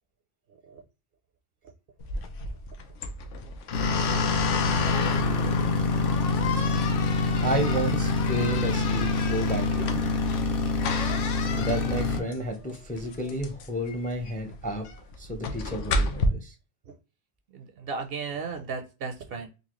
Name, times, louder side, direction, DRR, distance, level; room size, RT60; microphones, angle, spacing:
sound 1, 2.0-16.3, left 4 dB, 90° left, 1.0 m, -32 dB
sound 2, 3.7-12.2, left 3 dB, 55° left, 0.9 m, -26 dB
voice 1, 7.4-10.0 11.5-14.8 15.2-16.5, right 1 dB, 10° left, 0.5 m, -31 dB
voice 2, 17.5-19.5, right 5 dB, 60° right, 0.7 m, -35 dB
3.9 x 2.6 x 3.0 m
omnidirectional pair, 1.2 m